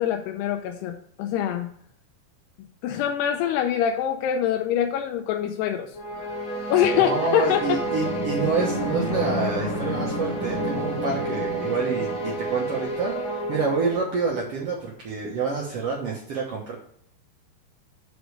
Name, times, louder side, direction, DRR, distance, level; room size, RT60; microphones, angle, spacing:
voice 1, 0.0-1.7 2.8-6.3 6.7-8.1, left 10 dB, 90° left, 4 dB, 2.6 m, -25 dB
sound 1, 5.9-14.4, right 1 dB, 30° left, 1.4 m, -29 dB
voice 2, 7.1-16.7, right 4 dB, 80° right, -3 dB, 1.3 m, -28 dB
6.0 x 5.1 x 6.4 m, 0.65 s
omnidirectional pair, 4.7 m